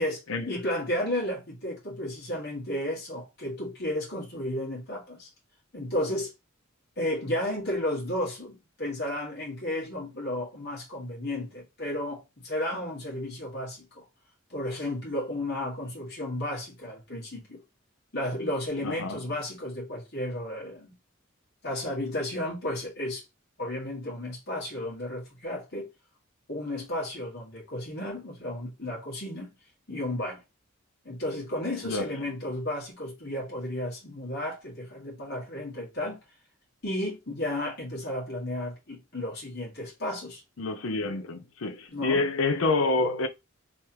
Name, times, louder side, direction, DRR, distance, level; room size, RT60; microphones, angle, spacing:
voice 1, 0.0-5.3 5.7-6.3 7.0-14.0 14.5-17.6 18.1-21.0 21.6-23.2 23.6-25.9 26.5-29.5 29.9-30.4 31.0-36.2 36.8-40.4 41.9-42.3, left 1 dB, 55° left, 1.9 m, -33 dB
voice 2, 18.8-19.2 31.8-32.1 40.6-43.3, left 3 dB, 75° left, 0.6 m, -27 dB
3.5 x 3.2 x 2.9 m
head